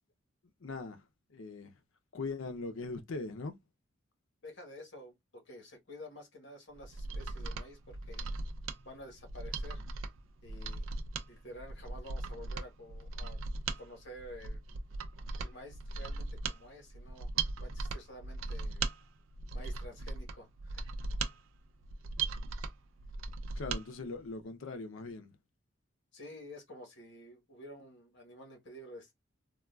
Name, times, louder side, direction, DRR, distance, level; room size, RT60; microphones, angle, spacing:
voice 1, 0.6-1.0 1.3-1.7 2.1-3.5 23.6-25.3, left 3 dB, 80° left, 0.6 m, -40 dB
voice 2, 4.4-8.3 8.8-9.8 10.4-10.8 11.3-13.4 13.7-14.6 15.4-17.3 17.6-18.9 19.5-20.9 26.1-29.1, left 1 dB, 65° left, 1.1 m, -50 dB
Mechanisms, 6.8-23.8 24.2-24.3, right 4 dB, 80° right, 0.4 m, -38 dB
3.5 x 2.3 x 2.2 m
head